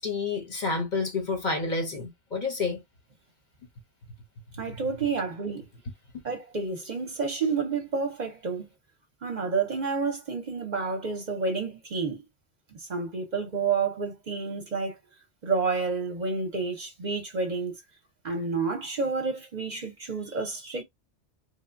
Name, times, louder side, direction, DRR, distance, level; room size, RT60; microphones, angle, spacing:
voice 1, 0.0-2.8, left 3 dB, 45° left, 0.7 m, -29 dB
voice 2, 4.6-5.7 6.2-8.7 9.2-12.2 12.7-15.0 15.4-17.8 18.2-20.8, right 4 dB, 45° right, 0.6 m, -29 dB
2.9 x 2.1 x 2.4 m
omnidirectional pair, 1.2 m